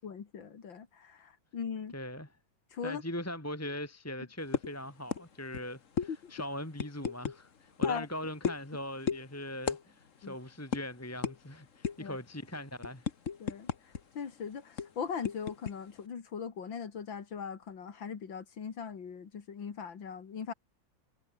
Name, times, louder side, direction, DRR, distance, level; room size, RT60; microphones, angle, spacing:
voice 1, 0.0-1.9 2.7-3.0 6.1-6.3 7.8-8.1 10.2-10.3 12.0-12.2 13.4-13.7 14.1-20.5, left 6 dB, 90° left, 2.9 m, -40 dB
voice 2, 1.9-2.3 2.8-13.1, left 1 dB, 10° left, 2.8 m, -40 dB
sound 1, 4.5-4.8 5.1-5.3 5.5-5.7 6.0-6.1 6.8-7.4 7.8-8.0 8.4-8.7 9.1-9.2 9.7-9.8 10.1-10.3 10.7-10.8 11.2-11.4 11.8-12.1 12.5-14.0 14.3-14.4 14.8-15.7, left 6 dB, 45° left, 1.7 m, -33 dB
omnidirectional pair, 2.0 m